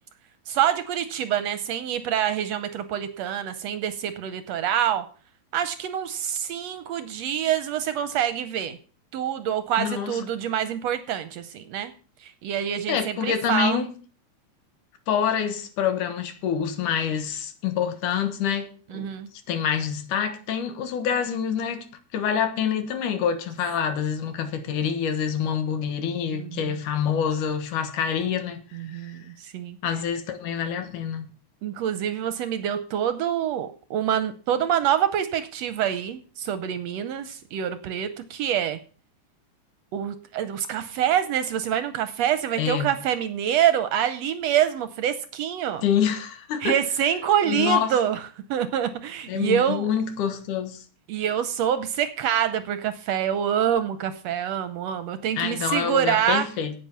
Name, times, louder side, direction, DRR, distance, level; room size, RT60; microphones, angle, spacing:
voice 1, 0.5-5.0 5.5-8.8 9.1-11.9 12.2-13.8 18.9-19.3 26.3-26.8 28.7-29.8 31.6-38.8 39.9-45.8 46.6-48.2 48.5-49.9 51.1-56.5, right 10 dB, 70° right, 1.7 m, -26 dB
voice 2, 9.8-10.2 12.9-13.9 15.1-19.1 19.5-21.9 22.1-29.2 29.8-31.3 42.6-42.9 45.8-46.8 47.5-47.9 49.3-50.8 55.4-56.7, left 8 dB, 80° left, 2.9 m, -26 dB
9.1 x 8.8 x 7.1 m
omnidirectional pair, 3.5 m